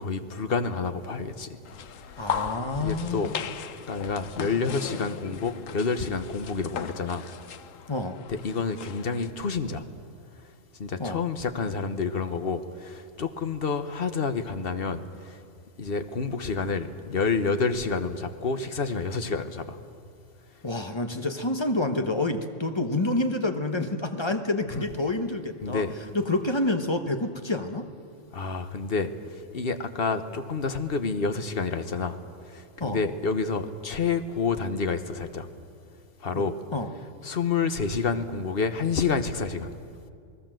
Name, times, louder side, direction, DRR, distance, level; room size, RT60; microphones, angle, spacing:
voice 1, 0.0-1.6 2.1-2.4 2.8-3.3 3.9-7.2 8.3-9.8 10.8-15.4 15.8-19.8 24.7-24.8 25.6-26.0 28.3-32.2 32.5-35.5 36.2-36.6 37.2-39.7, left 4 dB, 50° left, 9 dB, 1.3 m, -29 dB
sound 1, 1.7-9.3, left 8 dB, 85° left, 1.2 m, -37 dB
voice 2, 2.2-3.3 7.9-8.2 11.0-11.2 20.6-25.8 26.1-27.9 32.8-33.0 36.3-36.4 36.7-36.9, left 2 dB, 20° left, 6 dB, 1.2 m, -28 dB
28.0 x 19.0 x 7.7 m, 2.3 s
omnidirectional pair, 1.3 m